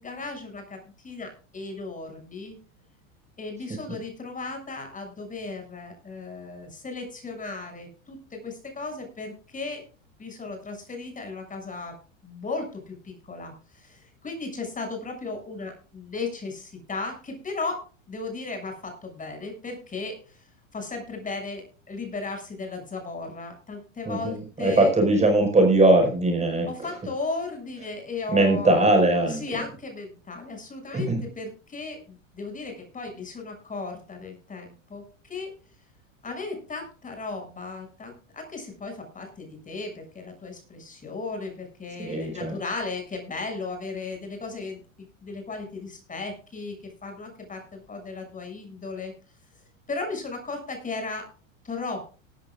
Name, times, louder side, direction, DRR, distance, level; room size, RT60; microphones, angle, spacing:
voice 1, 0.0-2.6 3.4-9.8 10.2-12.0 12.2-20.4 20.7-24.9 26.7-35.5 36.2-44.8 45.2-46.7 47.0-49.1 49.9-51.3 51.6-52.1, left 3 dB, 20° left, 4 dB, 6.7 m, -36 dB
voice 2, 24.0-26.7 28.3-29.4 30.9-31.2 42.0-42.5, right 2 dB, 15° right, 3 dB, 5.1 m, -20 dB
18.0 x 14.5 x 2.4 m, 0.37 s
hypercardioid pair, 110°, 40 cm